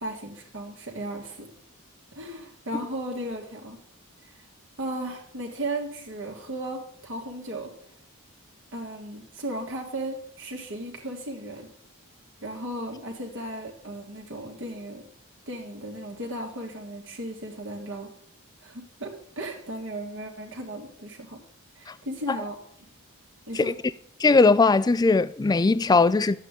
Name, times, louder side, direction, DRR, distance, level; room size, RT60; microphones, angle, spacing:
voice 1, 0.0-1.5 2.1-3.8 4.2-4.4 4.8-7.7 8.7-11.7 12.4-15.0 15.5-18.1 18.6-21.4 21.8-22.6 23.5-23.7, right 1 dB, 55° right, 1.9 m, -35 dB
voice 2, 24.2-26.4, left 3 dB, 20° left, 0.3 m, -19 dB
11.5 x 8.3 x 3.7 m
head